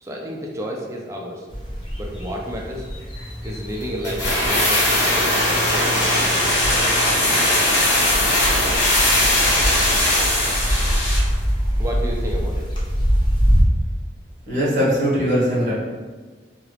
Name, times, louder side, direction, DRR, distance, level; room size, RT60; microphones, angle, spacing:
voice 1, 0.0-1.5 2.0-2.9 3.4-5.3 5.7-6.6 11.8-12.7, equal, 15° right, -1 dB, 0.4 m, -31 dB
sound 1, 1.5-13.6, equal, 25° left, 0.6 m, -25 dB
sound 2, 4.0-11.3 11.6-11.7, left 1 dB, 80° left, 0.9 m, -19 dB
voice 2, 14.5-15.7, equal, 40° right, -7 dB, 1.2 m, -20 dB
2.9 x 2.3 x 3.2 m, 1.4 s
head